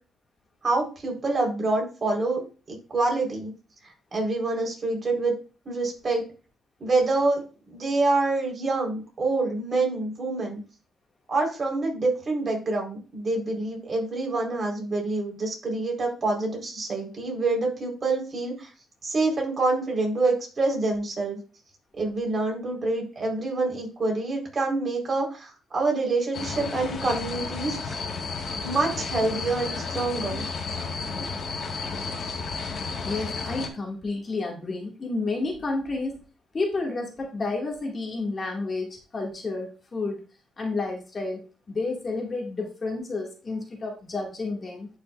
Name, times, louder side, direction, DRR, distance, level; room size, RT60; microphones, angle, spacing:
voice 1, 0.6-2.4 2.9-3.5 3.8-5.3 5.6-6.2 6.8-7.4 7.7-10.6 11.3-18.7 19.0-21.4 22.0-28.0 28.6-30.4, right 3 dB, 35° right, 0 dB, 4.3 m, -26 dB
sound 1, 26.3-33.7, left 4 dB, 50° left, 1.8 m, -32 dB
voice 2, 33.0-36.2 36.5-40.2 40.6-44.9, left 3 dB, 35° left, 0 dB, 2.2 m, -30 dB
11.0 x 5.7 x 2.6 m, 0.34 s
cardioid pair, 90°, 0 cm